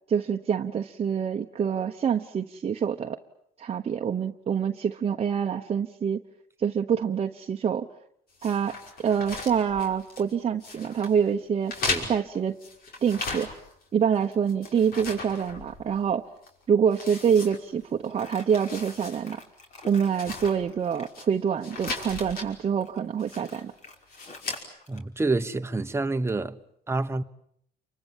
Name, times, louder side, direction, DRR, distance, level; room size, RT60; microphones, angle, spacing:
voice 1, 0.1-3.2 3.6-6.2 6.6-7.9 8.4-11.7 12.1-12.5 13.0-13.5 13.9-16.3 16.7-19.4 19.9-23.7, right 7 dB, 35° right, 1.1 m, -26 dB
sound 1, 8.4-10.3 10.6-11.1 11.7-13.8 14.1-16.1 16.4-16.5 16.9-18.1 18.4-19.2 19.5-19.6 20.1-21.3 21.6-22.5 23.2-23.6 24.1-24.6, left 3 dB, 60° left, 5.7 m, -36 dB
Crumpling crinkling, 18.1-21.2 22.8-25.0, left 3 dB, 45° left, 4.3 m, -47 dB
voice 2, 24.9-26.6 26.9-27.2, right 3 dB, 15° right, 1.2 m, -27 dB
29.0 x 24.5 x 7.5 m
cardioid pair, 110°, 17 cm